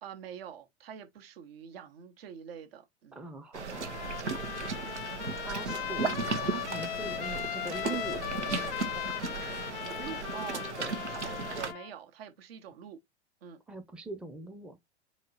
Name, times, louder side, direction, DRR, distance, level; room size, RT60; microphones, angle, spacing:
voice 1, 0.0-3.2 4.7-5.0 9.7-10.6 11.1-13.0 13.4-13.6, right 8 dB, 60° right, 1.2 m, -45 dB
voice 2, 3.1-4.1 5.2-8.6 10.8-10.9 13.7-14.8, right 3 dB, 5° right, 0.6 m, -42 dB
sound 1, 3.5-11.7, right 4 dB, 80° right, 1.0 m, -36 dB
Trumpet, 3.7-11.9, left 13 dB, 45° left, 0.5 m, -38 dB
4.3 x 3.1 x 3.9 m
figure-of-eight pair, 95°, 34 cm